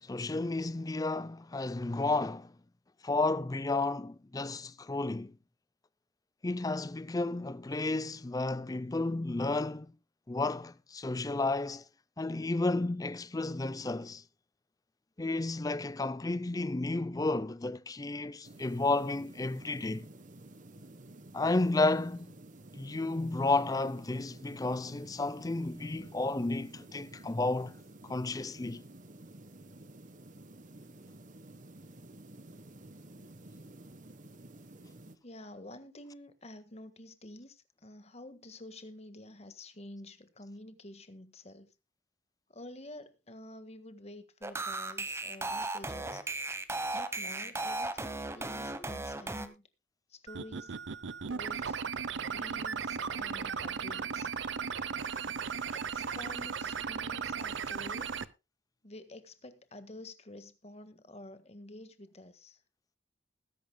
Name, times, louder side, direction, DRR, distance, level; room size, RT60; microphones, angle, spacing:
voice 1, 0.1-2.5 3.0-5.3 6.4-9.9 10.3-11.8 12.2-14.2 15.2-20.1 21.3-22.3 22.7-27.7 28.0-28.8, left 2 dB, 20° left, 0.5 m, -32 dB
sound 1, 18.4-35.2, right 1 dB, 40° right, 1.1 m, -52 dB
voice 2, 35.2-41.7 42.5-46.2 46.9-49.7 50.1-50.8 51.3-51.8 52.2-54.3 55.7-58.2 58.8-62.6, left 1 dB, 35° left, 1.6 m, -49 dB
sound 2, 44.4-49.5, right 2 dB, 15° right, 1.1 m, -36 dB
sound 3, 50.3-58.3, right 6 dB, 75° right, 0.7 m, -36 dB
20.5 x 10.5 x 2.3 m
head